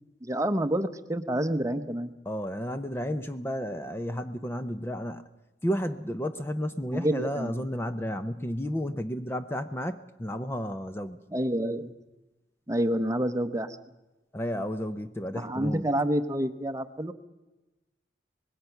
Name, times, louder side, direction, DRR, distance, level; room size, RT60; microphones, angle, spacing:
voice 1, 0.2-2.1 6.9-7.6 11.3-11.9 12.7-13.8 15.3-17.1, right 1 dB, 15° right, 10 dB, 0.8 m, -28 dB
voice 2, 2.3-5.3 5.6-11.2 14.3-15.8, equal, 15° left, 10 dB, 0.6 m, -32 dB
25.0 x 20.5 x 5.8 m, 1.1 s
head